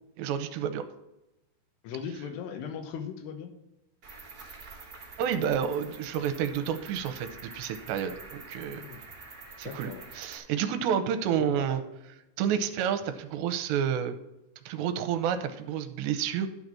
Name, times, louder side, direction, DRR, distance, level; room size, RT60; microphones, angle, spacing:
voice 1, 0.2-0.8 5.2-7.3 7.5-8.8 9.6-11.8 12.4-14.2 14.7-16.5, right 8 dB, 80° right, 9 dB, 2.8 m, -29 dB
voice 2, 1.8-3.5 8.7-9.0 9.6-10.0 11.4-11.8, left 7 dB, 75° left, 6 dB, 3.0 m, -38 dB
Cricket, 4.0-10.4, right 3 dB, 35° right, 1.4 m, -47 dB
12.0 x 4.0 x 7.4 m, 0.91 s
omnidirectional pair, 5.1 m